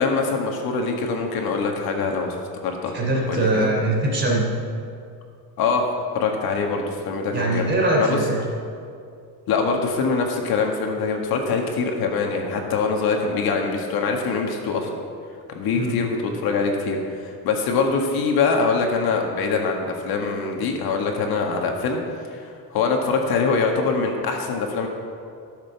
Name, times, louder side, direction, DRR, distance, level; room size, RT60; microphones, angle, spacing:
voice 1, 0.0-2.9 3.3-3.7 5.6-5.9 6.1-7.7 8.0-8.2 9.5-14.9 15.5-22.0 22.3-24.9, left 4 dB, 70° left, 2 dB, 1.7 m, -23 dB
voice 2, 2.9-4.5 7.3-8.4 15.7-16.0, right 2 dB, 30° right, -2 dB, 3.3 m, -22 dB
14.5 x 6.8 x 6.9 m, 2.4 s
cardioid pair, 150°, 37 cm